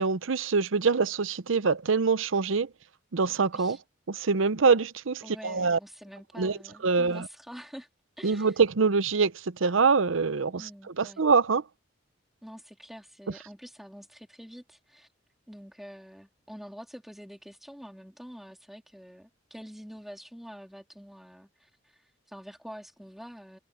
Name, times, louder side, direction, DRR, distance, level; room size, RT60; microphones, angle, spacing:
voice 1, 0.0-2.7 3.1-3.8 4.1-5.8 6.4-6.6 6.8-7.3 8.2-10.7 11.0-11.6, right 4 dB, 75° right, 0.7 m, -24 dB
voice 2, 5.2-7.9 8.2-8.6 10.6-11.2 12.4-15.1 15.5-23.6, equal, ahead, 3.1 m, -46 dB
head